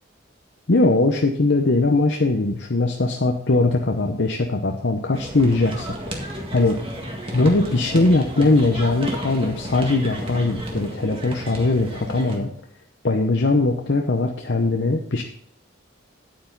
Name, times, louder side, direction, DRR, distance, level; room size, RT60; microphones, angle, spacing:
voice 1, 0.7-5.9 6.2-6.8 7.3-12.5 13.0-15.2, left 2 dB, 60° left, 3 dB, 0.8 m, -20 dB
sound 1, 5.1-12.4, equal, 30° right, 1.8 m, -32 dB
9.4 x 8.8 x 3.9 m, 0.64 s
head